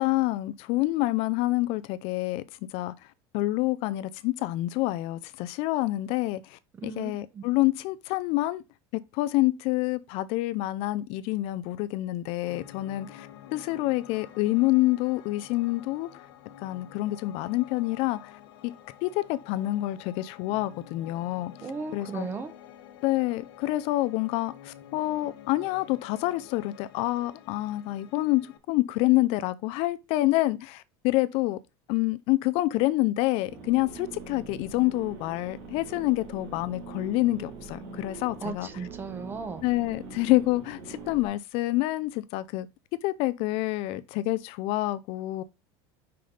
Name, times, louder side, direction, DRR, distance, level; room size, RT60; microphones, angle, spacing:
voice 1, 0.0-2.4 2.7-2.9 3.3-8.6 8.9-16.1 16.6-18.2 18.6-18.7 19.0-21.5 21.9-22.3 23.0-31.6 31.9-38.7 39.6-42.7 43.0-45.4, left 18 dB, 50° left, 0.4 m, -27 dB
voice 2, 6.8-7.4 21.6-22.5 38.4-39.6, right 4 dB, 15° right, 0.8 m, -36 dB
Piano, 12.5-28.6, left 11 dB, 85° left, 1.1 m, -49 dB
sound 1, 33.5-41.3, right 4 dB, 65° right, 2.4 m, -43 dB
5.6 x 5.0 x 3.8 m
cardioid pair, 160°, 13 cm